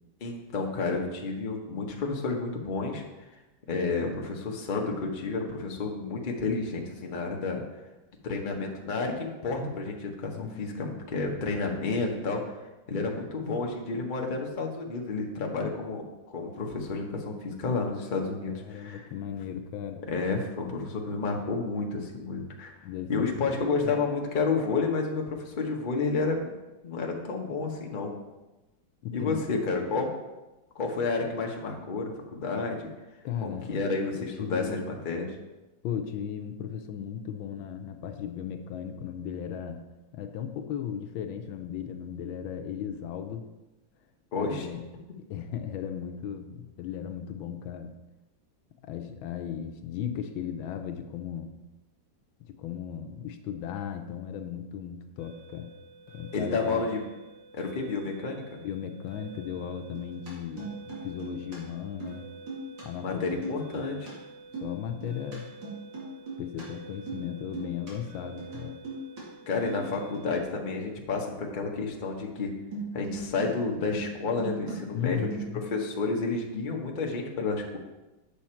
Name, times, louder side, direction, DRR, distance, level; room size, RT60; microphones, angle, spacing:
voice 1, 0.2-3.0 3.7-7.6 8.2-10.3 10.6-12.6 12.9-16.0 16.3-19.1 20.1-22.7 23.1-26.5 26.8-28.1 29.1-30.1 30.7-32.9 33.4-35.3 44.3-44.7 56.3-57.0 57.5-58.4 63.0-64.1 69.5-72.5 72.9-75.3 75.7-77.8, left 4 dB, 35° left, 1 dB, 0.9 m, -30 dB
voice 2, 10.3-11.0 18.5-20.0 22.8-24.0 29.0-29.4 33.2-33.7 34.1-34.8 35.8-39.8 40.1-43.5 44.3-44.9 45.3-47.9 48.8-51.5 52.4-55.7 56.1-56.8 58.6-62.3 62.8-63.3 63.7-63.8 64.6-65.5 66.4-68.8 74.9-75.7, left 8 dB, 85° left, 7 dB, 1.4 m, -36 dB
sound 1, 55.2-70.4, right 4 dB, 20° right, 2.2 m, -49 dB
sound 2, 59.8-60.3 60.6-61.6 61.9-62.2 62.5-62.8 63.3-64.1 64.4-65.4 65.6-66.6 66.9-67.2 67.5-67.9 68.4-69.2 69.7-69.9 70.1-70.3 72.7-73.5 73.7-74.8 75.0-75.8, right 2 dB, 65° right, 3.0 m, -38 dB
8.5 x 6.2 x 4.4 m, 1.1 s
omnidirectional pair, 2.2 m